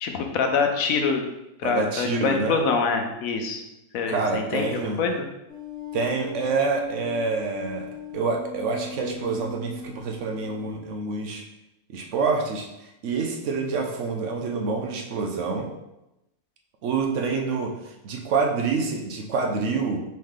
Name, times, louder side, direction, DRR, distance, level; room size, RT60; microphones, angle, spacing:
voice 1, 0.0-1.2 1.6-3.6 3.9-5.3, left 5 dB, 70° left, 4 dB, 1.0 m, -25 dB
voice 2, 1.6-2.6 4.1-5.0 5.9-11.4 11.9-15.7 16.8-20.0, right 4 dB, 65° right, 2 dB, 0.9 m, -27 dB
sound 1, 5.5-10.7, left 2 dB, 45° right, 1.4 m, -40 dB
4.6 x 3.2 x 3.7 m, 0.92 s
omnidirectional pair, 1.6 m